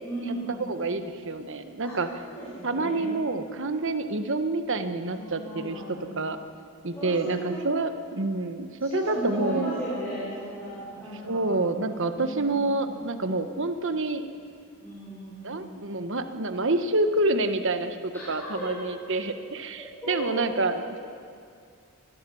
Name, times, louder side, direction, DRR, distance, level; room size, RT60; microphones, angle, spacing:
voice 1, 0.0-0.5 1.8-1.9 2.2-3.2 5.1-6.0 6.9-7.7 8.9-11.5 12.1-12.7 14.8-15.5 18.1-18.2 18.6-18.7 19.8-20.6, right 1 dB, 10° left, -10 dB, 7.1 m, -35 dB
voice 2, 0.7-2.1 2.6-6.4 6.8-9.7 11.2-14.2 15.4-21.0, right 2 dB, 60° right, 9 dB, 1.4 m, -28 dB
25.5 x 20.5 x 7.2 m, 2.3 s
head